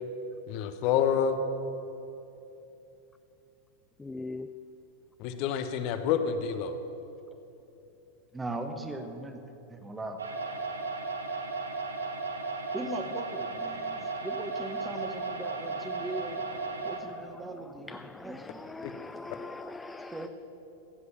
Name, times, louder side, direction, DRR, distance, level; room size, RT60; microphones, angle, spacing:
voice 1, 0.5-1.4 5.2-6.8 18.8-18.9, left 8 dB, 45° left, 8 dB, 0.8 m, -28 dB
voice 2, 4.0-4.5 17.3-17.4 17.9-20.3, left 3 dB, 10° left, 10 dB, 0.3 m, -41 dB
voice 3, 8.3-9.4 9.7-10.2 12.7-16.5 16.8-18.6 20.1-20.3, right 2 dB, 10° right, 6 dB, 1.1 m, -39 dB
sound 1, 10.2-17.0, right 3 dB, 75° right, 1.2 m, -35 dB
15.5 x 8.2 x 7.2 m, 2.9 s
figure-of-eight pair, 90°, 0 cm